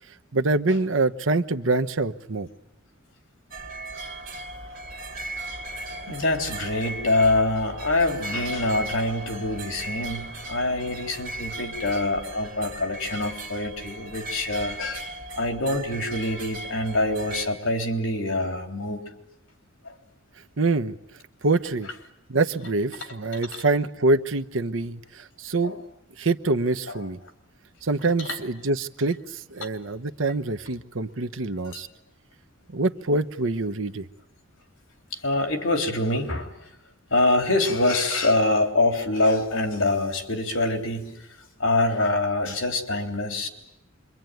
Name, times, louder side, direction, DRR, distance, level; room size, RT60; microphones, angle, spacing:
voice 1, 0.3-2.5 20.6-20.9 21.4-21.9 22.3-25.8 26.2-27.2 27.8-31.9 32.7-34.0, right 2 dB, 75° right, 8 dB, 1.1 m, -25 dB
sound 1, 3.5-17.5, right 1 dB, 45° right, 3.5 m, -37 dB
voice 2, 6.1-15.1 15.4-19.0 19.9-20.0 25.6-25.8 26.9-27.0 28.3-28.4 35.1-36.5 37.1-41.2 41.6-43.5, left 2 dB, 70° left, 4 dB, 3.6 m, -25 dB
26.0 x 23.5 x 9.3 m, 0.89 s
head